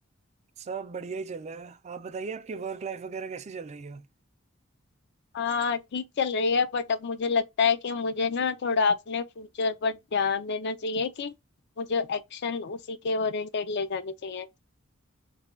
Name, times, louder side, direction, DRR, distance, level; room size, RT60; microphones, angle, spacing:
voice 1, 0.6-4.1, right 5 dB, 30° right, 0.4 m, -37 dB
voice 2, 5.3-11.3 11.8-14.5, left 5 dB, 55° left, 0.5 m, -28 dB
3.3 x 2.2 x 3.6 m
head